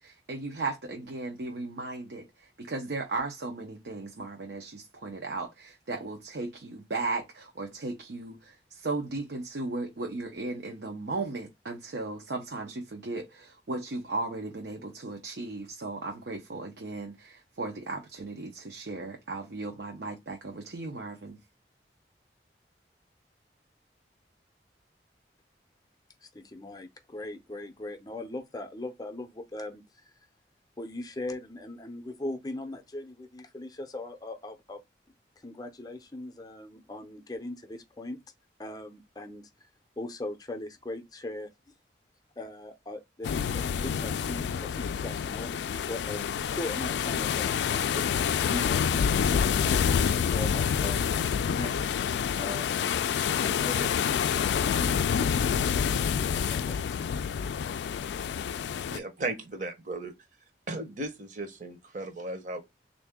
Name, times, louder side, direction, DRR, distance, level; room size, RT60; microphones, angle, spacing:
voice 1, 0.0-21.4, right 3 dB, 75° right, 0.7 m, -36 dB
voice 2, 26.2-30.1 30.8-34.8 35.4-38.2 38.6-39.7 40.0-41.5 42.4-48.1 48.5-52.8 53.4-57.2, left 1 dB, 20° left, 0.5 m, -40 dB
sound 1, 43.2-59.0, left 7 dB, 80° left, 0.3 m, -27 dB
voice 3, 58.9-60.1 60.7-62.6, right 2 dB, 45° right, 0.9 m, -36 dB
3.6 x 2.6 x 3.4 m
head